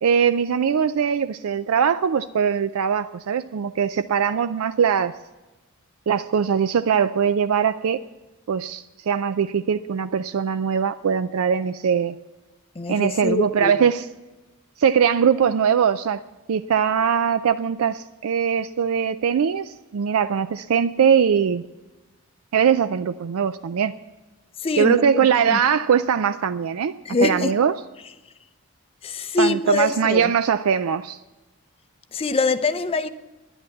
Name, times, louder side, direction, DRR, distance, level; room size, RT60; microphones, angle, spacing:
voice 1, 0.0-5.1 6.1-8.0 8.5-12.2 12.9-14.1 14.8-16.2 16.5-21.6 22.5-23.9 24.8-26.9 27.2-27.7 29.4-31.2, right 7 dB, 70° right, 0.4 m, -21 dB
voice 2, 12.8-13.7 24.6-25.6 27.1-27.6 29.0-30.3 32.1-33.1, left 3 dB, 25° left, 0.5 m, -24 dB
11.0 x 10.0 x 7.1 m
head